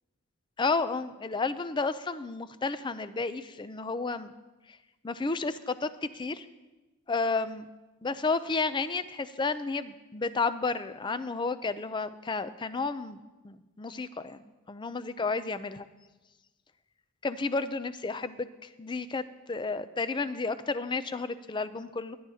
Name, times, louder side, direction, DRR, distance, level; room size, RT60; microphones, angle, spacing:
voice 1, 0.6-4.3 5.0-6.5 7.1-7.7 8.0-13.2 13.4-14.4 14.7-15.9 17.2-22.2, left 4 dB, 20° left, 13 dB, 0.4 m, -32 dB
21.0 x 10.0 x 2.8 m, 1.1 s
head